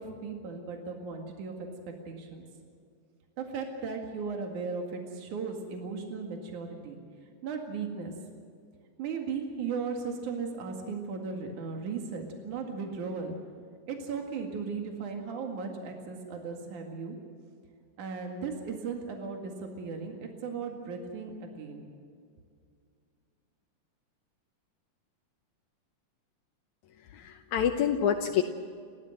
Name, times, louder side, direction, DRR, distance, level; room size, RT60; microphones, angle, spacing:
voice 1, 0.0-1.7 2.1-2.5 3.4-7.0 7.4-8.1 9.0-13.4 13.9-17.2 18.0-21.9, right 5 dB, 75° right, 3 dB, 3.5 m, -36 dB
voice 2, 27.0-28.4, left 8 dB, 75° left, 4 dB, 2.3 m, -27 dB
30.0 x 14.0 x 7.9 m, 2.2 s
omnidirectional pair, 3.5 m